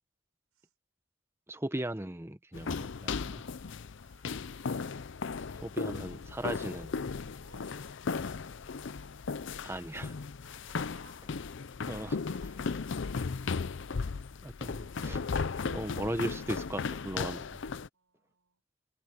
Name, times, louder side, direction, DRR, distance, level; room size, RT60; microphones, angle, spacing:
voice 1, 1.5-3.4 5.6-6.9 9.6-10.2 11.9-12.8 14.4-15.2 15.6-17.5, right 1 dB, 10° right, 0.9 m, -38 dB
sound 1, 2.5-17.9, left 5 dB, 55° left, 0.5 m, -36 dB
voice 2, 3.9-4.9 6.2-6.5 7.4-7.8 10.4-11.4 17.9-18.6, right 4 dB, 80° right, 5.5 m, -65 dB
head